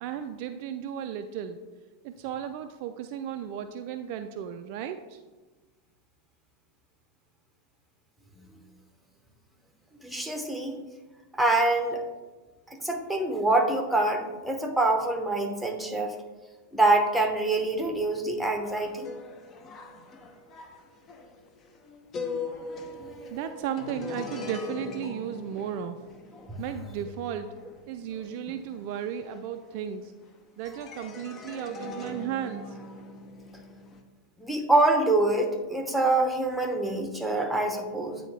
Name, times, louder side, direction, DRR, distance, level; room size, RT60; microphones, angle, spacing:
voice 1, 0.0-1.6 2.0-5.2 23.3-26.0 26.6-27.5 27.9-30.1 30.6-32.8, right 9 dB, 45° right, 7 dB, 0.3 m, -35 dB
voice 2, 10.0-10.8 11.3-12.0 12.8-16.1 16.7-19.1 34.4-38.2, right 2 dB, ahead, 3 dB, 0.9 m, -25 dB
sound 1, 18.6-30.2 30.6-34.0, left 3 dB, 30° left, 0.6 m, -41 dB
9.1 x 3.8 x 3.3 m, 1.2 s
figure-of-eight pair, 90°, 0 cm